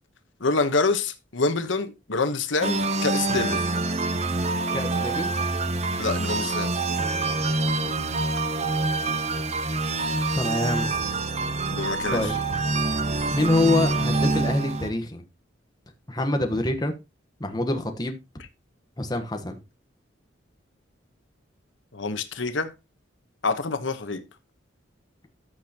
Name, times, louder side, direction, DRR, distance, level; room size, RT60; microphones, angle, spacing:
voice 1, 0.4-3.7 6.0-6.7 11.7-12.3 21.9-22.7 23.4-24.2, left 3 dB, 80° left, 1.1 m, -26 dB
sound 1, 2.6-14.9, right 3 dB, 35° right, 0.8 m, -26 dB
voice 2, 4.7-5.3 10.3-10.9 12.1-12.3 13.3-15.2 16.1-16.9 17.4-18.2 19.0-19.6, left 2 dB, 20° left, 1.2 m, -25 dB
14.0 x 6.3 x 2.9 m
head